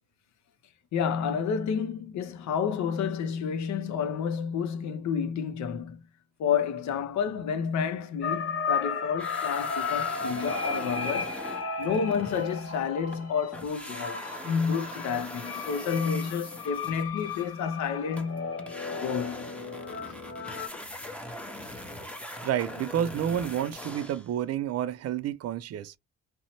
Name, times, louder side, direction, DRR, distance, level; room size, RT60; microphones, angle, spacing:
voice 1, 0.9-6.0 6.4-11.4 11.8-18.6 19.0-19.5, left 7 dB, 70° left, 0.6 m, -30 dB
sound 1, 8.2-20.7, left 5 dB, 50° left, 1.1 m, -35 dB
sound 2, 9.2-13.3 13.5-24.3, left 1 dB, 5° left, 0.7 m, -42 dB
voice 2, 22.4-25.9, right 10 dB, 55° right, 0.4 m, -30 dB
2.7 x 2.0 x 2.8 m
cardioid pair, 90°, 30 cm